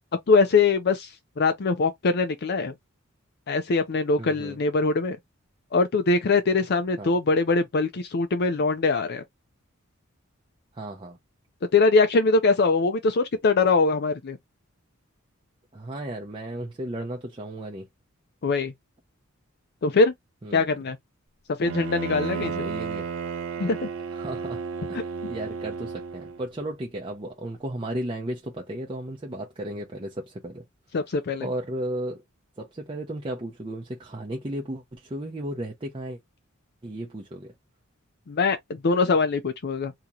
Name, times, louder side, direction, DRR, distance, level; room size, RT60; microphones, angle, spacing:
voice 1, 0.3-2.7 3.5-5.2 5.7-9.2 11.7-14.4 18.4-18.7 19.8-20.1 20.5-21.0 21.6-22.7 23.6-23.9 30.9-31.5 38.3-39.9, left 3 dB, 50° left, 0.5 m, -22 dB
voice 2, 4.2-4.6 7.0-7.2 10.7-11.2 15.7-17.9 20.4-20.7 22.4-23.1 24.1-30.6 31.4-32.2 32.6-36.2 36.8-37.5, right 1 dB, 25° right, 0.6 m, -34 dB
Bowed string instrument, 21.6-26.5, right 5 dB, 70° right, 0.6 m, -33 dB
2.9 x 2.8 x 3.6 m
head